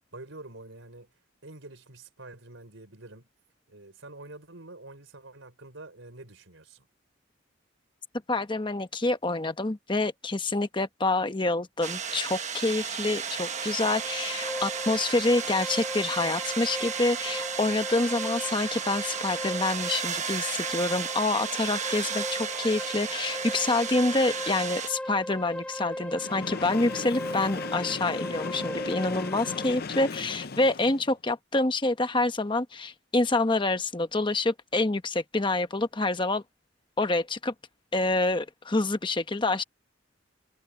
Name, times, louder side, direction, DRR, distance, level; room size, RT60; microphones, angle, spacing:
voice 1, 0.0-3.3 3.7-6.9, right 2 dB, 80° right, 4.1 m, -47 dB
voice 2, 8.3-36.4 37.0-37.5 37.9-39.6, left 2 dB, 25° left, 1.0 m, -27 dB
sound 1, 11.8-24.9, right 7 dB, 35° right, 1.3 m, -34 dB
sound 2, 13.3-29.7, left 1 dB, 5° left, 1.3 m, -38 dB
Train, 26.1-31.1, left 4 dB, 50° left, 0.6 m, -37 dB
head